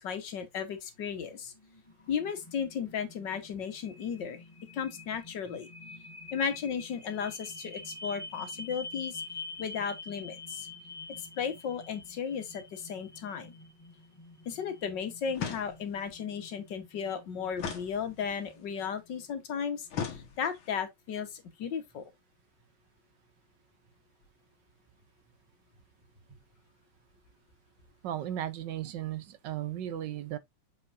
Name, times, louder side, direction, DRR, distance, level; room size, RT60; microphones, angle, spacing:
voice 1, 0.0-1.5 2.1-4.4 4.7-5.7 6.3-9.2 9.6-10.7 11.2-13.5 14.5-22.1, left 7 dB, 65° left, 1.9 m, -35 dB
sound 1, 1.2-19.2, left 3 dB, 25° left, 0.7 m, -47 dB
sound 2, 15.3-16.1 17.6-18.5 19.9-20.8, left 7 dB, 90° left, 2.2 m, -38 dB
voice 2, 28.0-30.4, right 11 dB, 70° right, 1.3 m, -35 dB
6.9 x 5.6 x 2.6 m
omnidirectional pair, 2.2 m